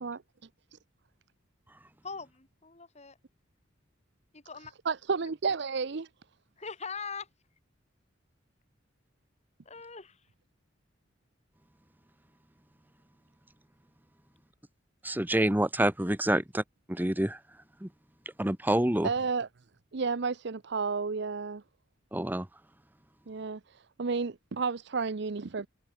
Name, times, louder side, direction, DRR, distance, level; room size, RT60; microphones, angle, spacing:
voice 1, 2.0-3.2 4.3-4.7 6.6-7.3 9.6-10.2, left 5 dB, 35° left, 2.9 m, -41 dB
voice 2, 4.8-6.1 19.0-19.5 19.9-21.6 23.3-23.6 24.0-25.7, right 5 dB, 60° right, 0.6 m, -31 dB
voice 3, 15.0-16.6 16.9-17.4 17.8-17.9 18.4-19.1 22.1-22.5, right 1 dB, 10° right, 1.0 m, -27 dB
head